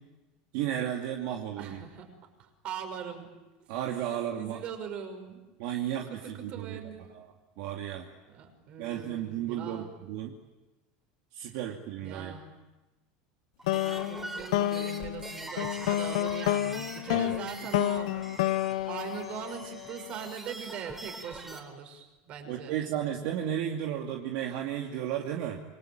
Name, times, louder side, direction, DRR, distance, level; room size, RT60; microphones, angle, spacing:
voice 1, 0.5-1.8 3.7-4.6 5.6-6.8 7.1-7.3 7.6-8.1 8.8-10.3 11.3-12.4 17.1-17.3 22.5-25.6, right 10 dB, 60° right, 1 dB, 2.6 m, -33 dB
voice 2, 1.5-2.1 2.4-3.3 4.3-5.4 6.1-7.0 8.3-9.9 12.0-12.5 13.7-18.3 18.9-22.8, right 7 dB, 40° right, 6 dB, 5.8 m, -41 dB
sound 1, 13.6-21.6, right 2 dB, 10° right, 4.1 m, -43 dB
sound 2, 13.7-20.1, left 14 dB, 80° left, 1.0 m, -30 dB
27.5 x 24.0 x 9.1 m, 1.1 s
supercardioid pair, 160°, 3 cm